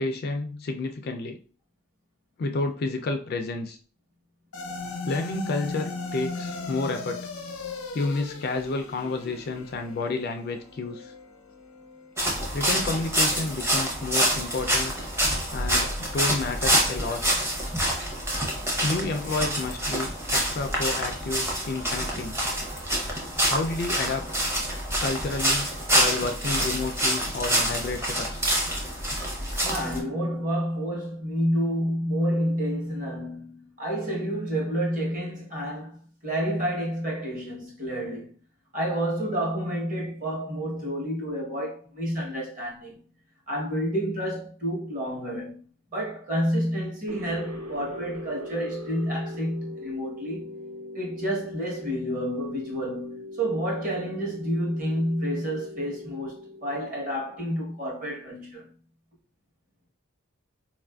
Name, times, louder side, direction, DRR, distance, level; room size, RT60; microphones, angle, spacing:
voice 1, 0.0-1.4 2.4-3.8 5.0-7.2 7.9-11.1 12.5-14.9 15.5-17.2 18.8-22.4 23.5-24.2 25.0-28.4, left 3 dB, 45° left, 0.3 m, -30 dB
sound 1, 4.5-13.0, left 3 dB, 90° left, 0.7 m, -38 dB
sound 2, 12.2-30.0, right 1 dB, 10° right, 0.6 m, -26 dB
voice 2, 29.6-36.0 36.2-38.3 38.7-42.9 43.5-45.6 45.9-50.5 50.9-58.7, equal, 40° right, 1.0 m, -29 dB
sound 3, 47.1-57.9, left 2 dB, 80° right, 0.8 m, -41 dB
4.1 x 2.4 x 2.2 m
head